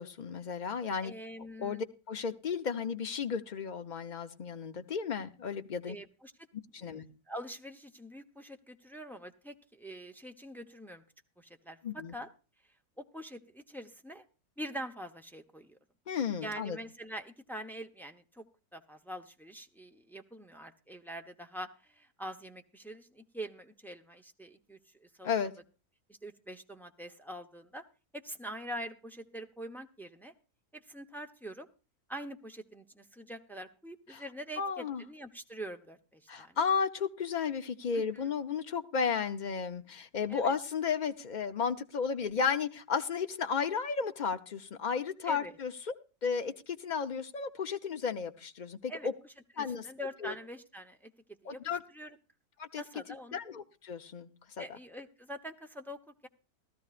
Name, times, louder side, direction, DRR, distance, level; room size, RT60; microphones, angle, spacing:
voice 1, 0.0-1.1 1.6-6.0 6.7-7.0 11.8-12.1 16.1-16.8 25.2-25.5 34.1-34.2 34.6-35.0 36.3-45.9 46.2-49.1 49.6-49.9 50.2-50.3 51.5-51.8 52.6-52.8 53.3-54.3 54.6-54.7, left 6 dB, 40° left, 7 dB, 0.8 m, -33 dB
voice 2, 1.0-1.8 5.9-6.3 6.8-7.0 7.3-11.0 11.4-12.3 13.0-14.2 14.6-15.8 16.4-18.4 18.7-25.3 26.1-27.8 28.1-30.3 30.7-31.7 32.1-36.6 37.9-38.2 40.3-40.5 45.2-45.6 48.9-51.1 51.4-52.2 52.8-53.4 54.6-56.3, equal, ahead, 5 dB, 0.7 m, -44 dB
16.5 x 13.0 x 2.5 m, 0.34 s
omnidirectional pair, 1.6 m